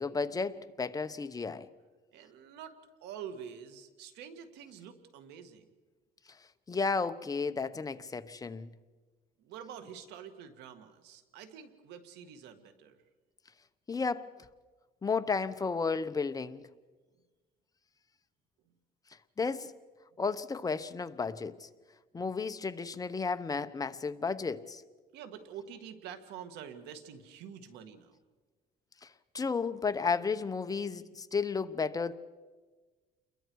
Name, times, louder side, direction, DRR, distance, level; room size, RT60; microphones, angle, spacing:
voice 1, 0.0-1.7 6.7-8.7 13.9-14.3 15.0-16.6 19.4-19.7 20.2-21.7 22.1-24.8 29.0-29.1 29.3-32.1, left 4 dB, 20° left, 0.9 m, -33 dB
voice 2, 2.1-5.7 9.4-13.0 25.1-28.2, right 8 dB, 90° right, 1.9 m, -47 dB
28.5 x 22.0 x 4.7 m
cardioid pair, 110°, 17 cm